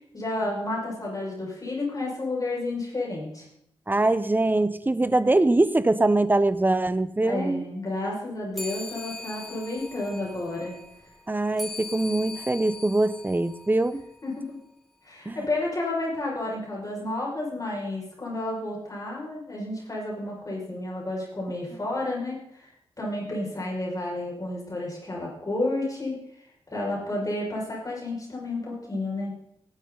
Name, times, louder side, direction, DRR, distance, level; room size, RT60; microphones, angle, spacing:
voice 1, 0.1-3.5 7.2-10.7 14.2-14.6 15.0-22.7 23.0-26.2 26.7-29.4, left 2 dB, 35° left, -3 dB, 5.8 m, -31 dB
voice 2, 3.9-7.7 11.3-14.0 15.3-15.4, right 2 dB, 20° right, 15 dB, 0.8 m, -23 dB
sound 1, 8.5-14.4, left 3 dB, ahead, 3.0 m, -41 dB
18.5 x 11.0 x 4.0 m, 0.74 s
cardioid pair, 60°, 10 cm